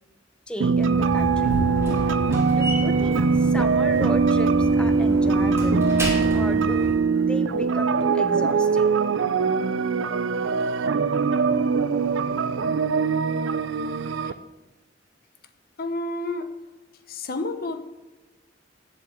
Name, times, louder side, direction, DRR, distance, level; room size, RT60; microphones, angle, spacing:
voice 1, 0.5-1.5 2.5-5.9 6.3-7.0 7.3-8.9, equal, 5° left, 9 dB, 0.7 m, -34 dB
sound 1, 0.6-14.3, right 4 dB, 85° right, 0.5 m, -22 dB
Slam, 0.8-7.0, equal, 15° right, 2.6 m, -31 dB
voice 2, 15.8-16.5 17.1-17.8, left 2 dB, 55° left, 9 dB, 0.9 m, -30 dB
7.8 x 7.5 x 7.7 m, 1.1 s
head